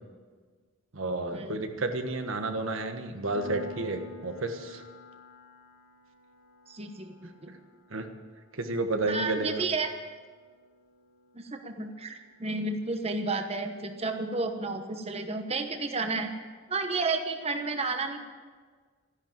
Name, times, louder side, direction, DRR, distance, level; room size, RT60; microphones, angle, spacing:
voice 1, 0.9-4.8 7.9-8.0 8.5-9.6, right 2 dB, 85° right, 6 dB, 1.5 m, -31 dB
Piano, 3.3-13.7, left 1 dB, 80° left, 3.1 m, -50 dB
voice 2, 6.7-7.6 9.1-9.9 11.3-16.3 16.7-18.2, right 3 dB, 30° right, 6 dB, 1.1 m, -32 dB
14.0 x 10.5 x 9.2 m, 1.5 s
head